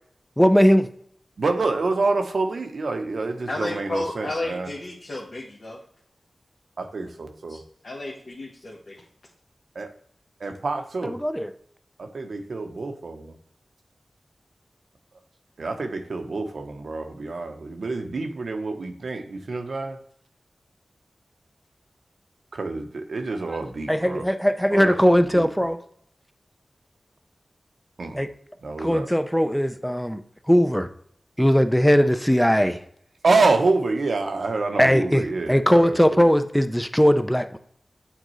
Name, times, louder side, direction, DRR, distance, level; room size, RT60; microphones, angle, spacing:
voice 1, 0.4-0.9 11.0-11.5 23.5-23.6 23.9-25.8 28.1-28.3 28.8-30.2 30.5-30.9 31.4-32.8 34.8-37.6, equal, 5° left, 10 dB, 0.5 m, -19 dB
voice 2, 1.4-4.7 6.8-7.6 9.8-9.9 10.4-11.1 12.0-13.3 15.6-20.0 22.5-24.2 24.7-24.9 25.3-25.4 28.0-28.2 28.6-29.1 33.2-36.0, right 3 dB, 80° right, 5 dB, 0.8 m, -27 dB
voice 3, 3.5-5.8 7.5-9.0, left 2 dB, 60° left, -4 dB, 1.1 m, -32 dB
8.8 x 3.9 x 3.1 m, 0.64 s
wide cardioid pair, 75°, 0 cm